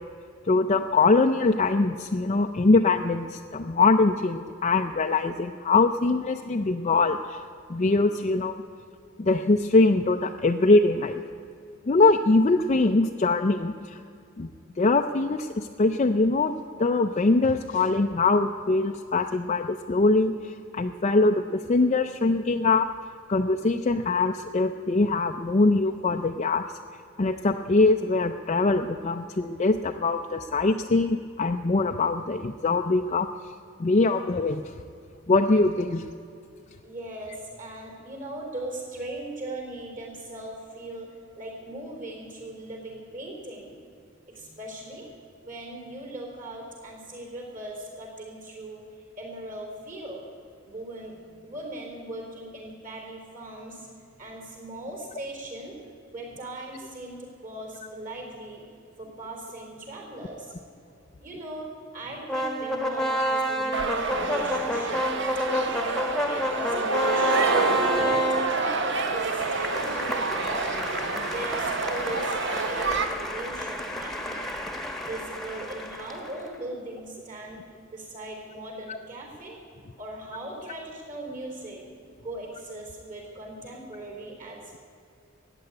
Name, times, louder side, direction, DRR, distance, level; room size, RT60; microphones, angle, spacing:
voice 1, 0.5-7.4 7.7-8.6 9.2-11.2 11.9-14.0 14.4-14.5 14.8-22.9 23.3-26.6 27.2-33.3 33.8-34.6 35.3-36.0 63.1-63.3 78.9-79.0, left 3 dB, 35° left, 4 dB, 0.5 m, -23 dB
voice 2, 36.8-43.8 44.3-45.1 45.4-50.2 50.6-55.8 56.1-58.6 59.0-60.5 61.2-65.8 66.3-67.5 67.9-70.7 71.3-74.6 75.0-79.6 80.0-81.8 82.2-84.8, right 1 dB, 40° right, 2 dB, 4.2 m, -39 dB
sound 1, 62.3-76.5, equal, ahead, 1.2 m, -30 dB
sound 2, 63.7-73.0, right 3 dB, 65° right, 1.1 m, -28 dB
14.5 x 9.1 x 9.6 m, 2.5 s
head